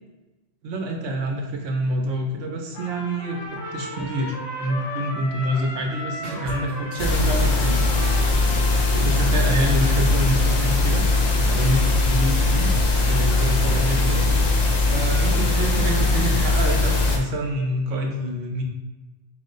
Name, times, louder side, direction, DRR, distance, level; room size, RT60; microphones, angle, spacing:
voice 1, 0.6-8.2 8.9-11.2 11.6-12.7 13.1-14.3 14.9-18.6, right 1 dB, 90° right, 1 dB, 1.0 m, -27 dB
Trumpet, 2.7-9.5, left 1 dB, 80° left, 1.3 m, -35 dB
sound 1, 6.2-16.8, left 2 dB, 70° right, 1.4 m, -37 dB
sound 2, 7.0-17.2, left 2 dB, 45° left, 0.6 m, -20 dB
4.9 x 2.1 x 3.8 m, 1.1 s
omnidirectional pair, 1.2 m